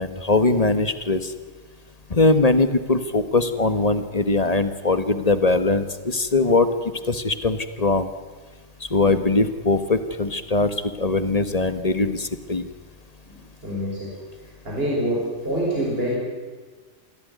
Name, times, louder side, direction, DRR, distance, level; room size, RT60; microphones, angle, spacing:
voice 1, 0.0-1.3 2.1-8.1 8.8-12.7, left 3 dB, 30° left, 11 dB, 1.4 m, -21 dB
voice 2, 13.3-14.2 14.6-16.2, equal, 50° right, -4 dB, 5.9 m, -26 dB
25.0 x 16.0 x 9.4 m, 1.4 s
omnidirectional pair, 1.3 m